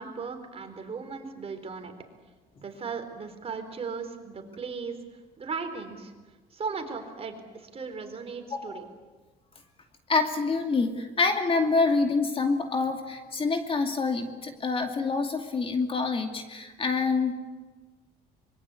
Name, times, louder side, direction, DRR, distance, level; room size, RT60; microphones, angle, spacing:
voice 1, 0.0-1.9 2.6-4.9 5.4-6.1 6.5-8.8, right 5 dB, 35° right, 6 dB, 4.2 m, -37 dB
voice 2, 8.5-8.8 10.1-17.3, left 4 dB, 35° left, 5 dB, 2.5 m, -26 dB
25.0 x 22.5 x 8.5 m, 1.3 s
cardioid pair, 110°, 17 cm